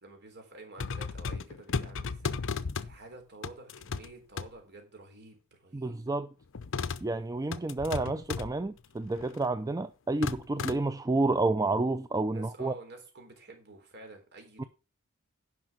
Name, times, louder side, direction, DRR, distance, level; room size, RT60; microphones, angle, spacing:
voice 1, 0.0-2.4 2.8-6.0 12.3-14.7, right 2 dB, 50° right, 3.7 m, -50 dB
sound 1, 0.8-3.0 3.4-4.1 4.4-4.5 6.5-7.1 7.5-8.5 9.1-9.4 10.2-10.8, left 5 dB, 60° left, 0.7 m, -34 dB
voice 2, 5.7-6.3 7.0-12.7 14.6-14.7, right 2 dB, 15° right, 0.4 m, -30 dB
10.5 x 6.0 x 6.0 m
head